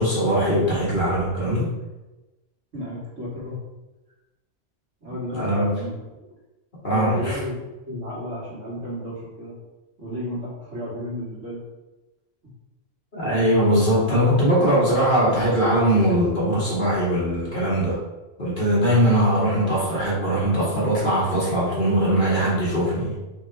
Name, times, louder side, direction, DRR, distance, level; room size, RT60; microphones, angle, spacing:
voice 1, 0.0-1.7 5.3-5.7 6.8-7.4 13.1-18.0 18.4-23.1, equal, 45° left, -8 dB, 1.7 m, -21 dB
voice 2, 2.7-3.6 5.0-5.9 6.9-9.5 10.0-11.6, left 1 dB, 80° right, -8 dB, 2.0 m, -33 dB
4.2 x 3.0 x 3.3 m, 1.1 s
omnidirectional pair, 1.2 m